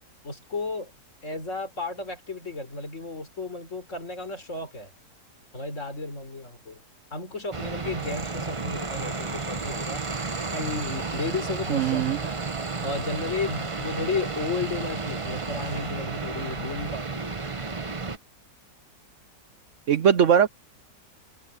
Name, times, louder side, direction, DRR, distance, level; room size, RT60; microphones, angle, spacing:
voice 1, 0.2-0.9 1.2-4.9 5.5-6.8 7.1-10.0 10.5-12.4 12.8-17.6, left 3 dB, 45° left, 4.3 m, -33 dB
sound 1, 7.5-18.2, right 4 dB, 25° right, 0.7 m, -32 dB
voice 2, 11.7-12.2 19.9-20.5, right 8 dB, 65° right, 0.8 m, -20 dB
omnidirectional pair, 1.9 m